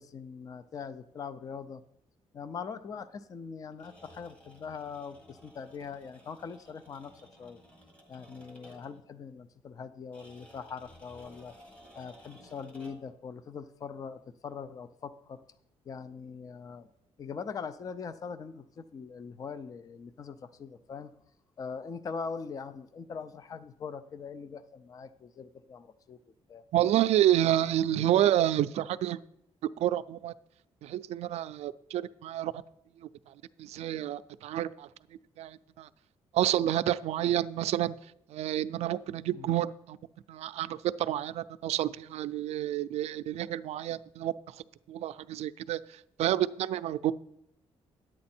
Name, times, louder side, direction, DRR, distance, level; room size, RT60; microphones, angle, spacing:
voice 1, 0.0-1.8 2.3-7.1 7.4-7.6 8.1-11.5 11.9-15.4 15.8-16.9 17.2-21.1 21.6-26.2 26.5-26.6 39.3-39.5, left 6 dB, 35° left, 13 dB, 0.4 m, -42 dB
sound 1, 3.7-9.1 10.1-13.2, equal, 10° left, 1.4 m, -55 dB
voice 2, 26.7-29.2 29.8-30.3 30.8-32.5 33.6-34.9 35.4-35.9 36.3-38.0 38.3-40.0 40.3-44.3 44.9-45.8 46.2-47.1, right 12 dB, 75° right, 15 dB, 0.4 m, -29 dB
10.5 x 8.7 x 4.3 m, 0.76 s
cardioid pair, 160°, 11 cm